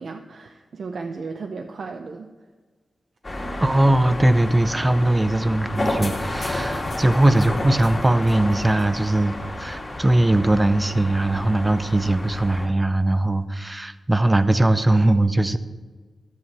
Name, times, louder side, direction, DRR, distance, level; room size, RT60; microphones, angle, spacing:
voice 1, 0.0-2.3, right 4 dB, 65° right, 5 dB, 0.5 m, -34 dB
sound 1, 3.2-12.7, left 1 dB, 30° left, 2.1 m, -30 dB
voice 2, 3.6-15.6, right 1 dB, 15° right, 12 dB, 0.5 m, -20 dB
12.5 x 4.7 x 7.1 m, 1.4 s
wide cardioid pair, 120°, 0 cm